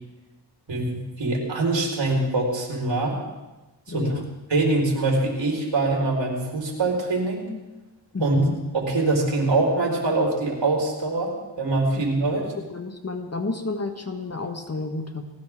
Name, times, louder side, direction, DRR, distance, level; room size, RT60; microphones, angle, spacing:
voice 1, 0.7-3.2 3.9-4.1 4.5-7.4 8.2-8.4 8.7-12.5, right 2 dB, 75° right, -1 dB, 4.7 m, -24 dB
voice 2, 3.9-4.3 8.1-8.6 12.0-12.1 12.5-15.2, left 3 dB, 35° left, 5 dB, 1.5 m, -30 dB
20.0 x 19.0 x 3.7 m, 1.1 s
cardioid pair, 55°, 44 cm